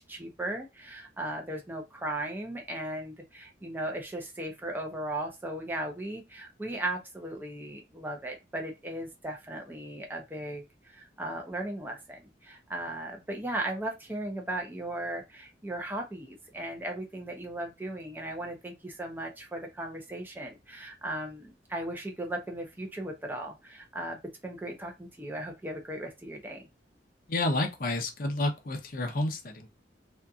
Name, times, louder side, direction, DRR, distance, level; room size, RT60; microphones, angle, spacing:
voice 1, 0.0-26.7, right 1 dB, 10° right, 0.5 m, -37 dB
voice 2, 27.3-29.7, left 2 dB, 55° left, 0.6 m, -30 dB
2.7 x 2.5 x 2.3 m
head